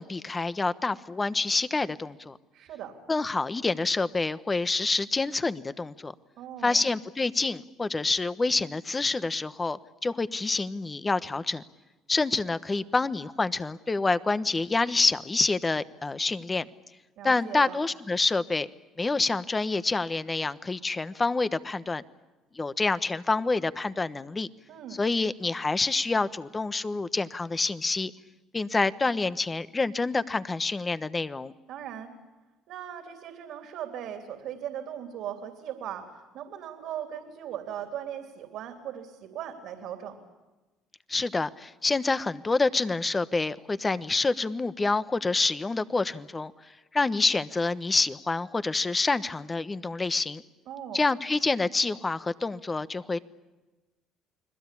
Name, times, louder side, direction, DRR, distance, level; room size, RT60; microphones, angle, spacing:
voice 1, 0.0-2.4 3.1-6.1 6.6-11.6 12.1-16.7 17.2-18.7 19.0-22.0 22.5-24.5 24.9-28.1 28.5-31.5 41.1-46.5 46.9-50.4 50.9-53.2, left 3 dB, 20° left, 14 dB, 1.1 m, -27 dB
voice 2, 2.5-2.9 6.4-6.8 17.2-17.8 24.7-25.0 31.7-32.2 32.7-40.2 50.7-51.0, right 10 dB, 70° right, 5 dB, 3.3 m, -38 dB
29.5 x 21.0 x 8.5 m, 1.1 s
cardioid pair, 95°, 0 cm